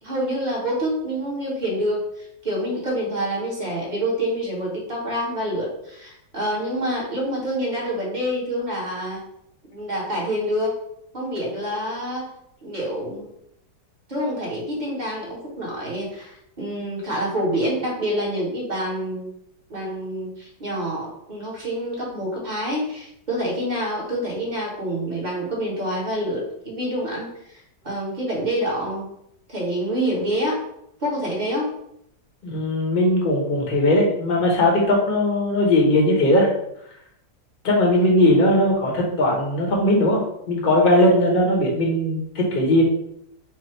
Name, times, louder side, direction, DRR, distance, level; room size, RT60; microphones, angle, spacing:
voice 1, 0.0-9.2 9.7-10.8 11.1-12.3 12.6-13.3 14.1-19.3 19.7-27.3 27.8-29.1 29.5-30.6 31.0-31.7, equal, 25° right, -4 dB, 1.4 m, -27 dB
voice 2, 32.4-36.5 37.6-40.2 40.5-42.8, left 1 dB, 35° left, -2 dB, 1.1 m, -19 dB
4.9 x 2.4 x 4.5 m, 0.75 s
omnidirectional pair, 1.9 m